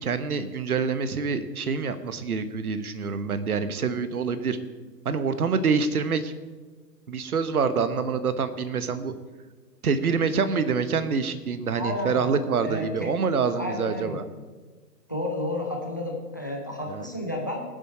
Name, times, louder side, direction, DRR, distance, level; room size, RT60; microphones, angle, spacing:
voice 1, 0.0-4.6 5.0-6.3 7.1-9.1 9.8-14.2 16.9-17.1, right 5 dB, 60° right, 11 dB, 1.1 m, -26 dB
voice 2, 11.7-14.2 15.1-17.6, left 1 dB, 15° left, 1 dB, 0.5 m, -32 dB
20.5 x 7.5 x 4.3 m, 1.4 s
figure-of-eight pair, 135°, 50 cm